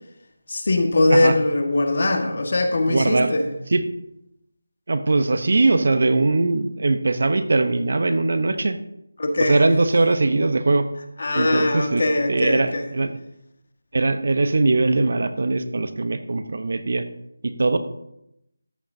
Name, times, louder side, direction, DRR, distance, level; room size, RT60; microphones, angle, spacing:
voice 1, 0.5-3.5 9.2-9.7 11.2-12.9, left 2 dB, 55° left, 5 dB, 1.5 m, -21 dB
voice 2, 2.9-3.3 3.7-3.8 4.9-8.8 9.4-10.9 11.3-13.1 13.9-17.0 17.4-17.8, right 3 dB, 60° right, 10 dB, 0.8 m, -21 dB
13.5 x 8.9 x 2.7 m, 0.83 s
figure-of-eight pair, 170°, 0 cm